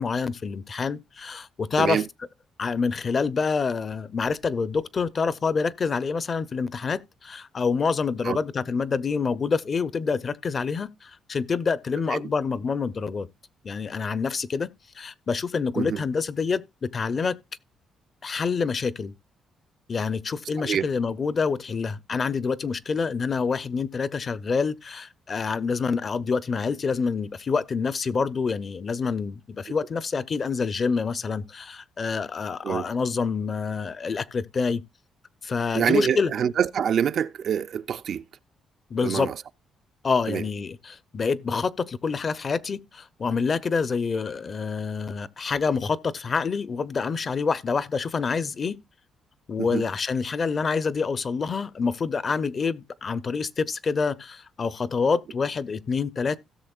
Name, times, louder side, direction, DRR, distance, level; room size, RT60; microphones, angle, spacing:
voice 1, 0.0-2.0 2.6-13.3 13.6-17.4 18.2-19.1 19.9-34.8 35.4-36.3 38.9-39.3 40.0-48.8 49.5-56.4, left 5 dB, 40° left, 0.6 m, -27 dB
voice 2, 20.6-20.9 32.6-32.9 35.7-38.2 39.0-39.3 40.3-40.4 49.6-49.8, right 8 dB, 60° right, 0.4 m, -26 dB
16.5 x 6.6 x 2.4 m
cardioid pair, 90°, 0 cm